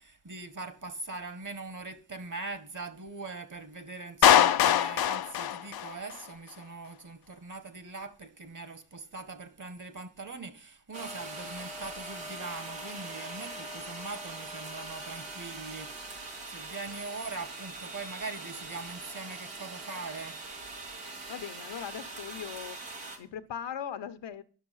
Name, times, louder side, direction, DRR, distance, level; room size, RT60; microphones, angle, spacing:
voice 1, 0.0-20.4, right 3 dB, 45° right, 1.7 m, -42 dB
Clapping, 4.2-6.3, left 11 dB, 60° left, 0.6 m, -22 dB
sound 1, 10.9-23.2, right 2 dB, 90° right, 2.4 m, -42 dB
voice 2, 21.3-22.8 23.2-24.4, left 8 dB, 80° left, 1.0 m, -39 dB
11.0 x 6.1 x 5.5 m
cardioid pair, 60°, 43 cm